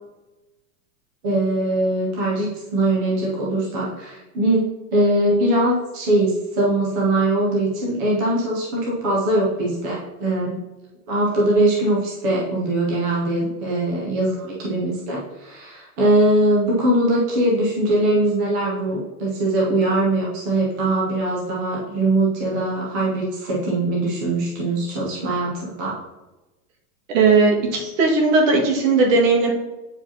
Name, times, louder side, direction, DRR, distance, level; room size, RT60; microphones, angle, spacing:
voice 1, 1.2-10.6 11.1-26.0, right 1 dB, 15° right, -4 dB, 0.3 m, -21 dB
voice 2, 27.1-29.5, right 3 dB, 55° right, 0 dB, 1.8 m, -17 dB
8.7 x 4.7 x 2.7 m, 1.1 s
supercardioid pair, 160°, 46 cm